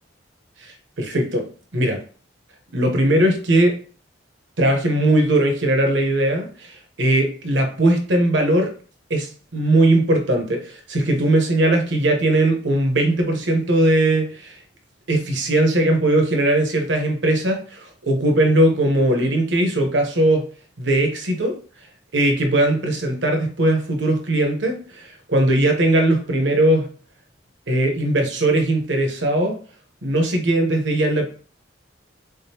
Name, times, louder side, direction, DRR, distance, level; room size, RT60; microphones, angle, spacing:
voice 1, 0.6-1.5 1.7-2.0 2.7-3.8 4.6-8.7 9.1-14.5 15.1-20.5 20.8-21.6 22.1-26.9 27.7-29.6 30.0-31.3, right 1 dB, 70° right, 4 dB, 1.0 m, -19 dB
3.7 x 3.7 x 2.8 m, 0.41 s
head